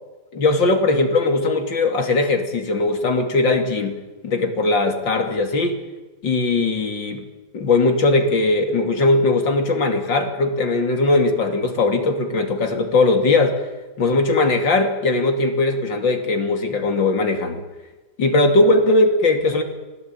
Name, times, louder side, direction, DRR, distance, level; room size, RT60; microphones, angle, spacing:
voice 1, 0.3-4.0 4.2-5.8 6.2-7.2 7.5-13.6 14.0-17.6 18.2-19.6, left 2 dB, 75° left, 5 dB, 3.5 m, -19 dB
25.0 x 18.0 x 9.0 m, 1.2 s
omnidirectional pair, 2.0 m